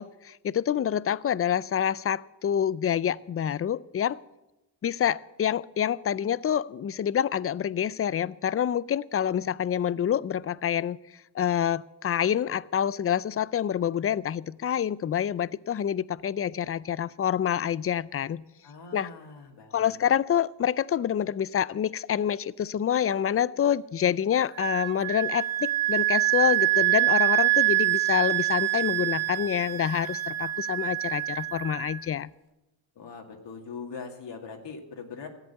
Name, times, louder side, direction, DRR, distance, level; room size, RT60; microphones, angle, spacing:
voice 1, 0.0-4.2 4.8-11.0 11.3-18.4 18.9-19.1 19.7-32.3, left 9 dB, 30° left, 20 dB, 0.4 m, -27 dB
voice 2, 18.6-19.9 33.0-35.3, left 5 dB, 65° left, 2 dB, 2.2 m, -41 dB
Wind instrument woodwind instrument, 24.6-32.0, right 19 dB, 85° right, 1.0 m, -26 dB
14.0 x 8.2 x 8.1 m, 0.97 s
cardioid pair, 75°, 46 cm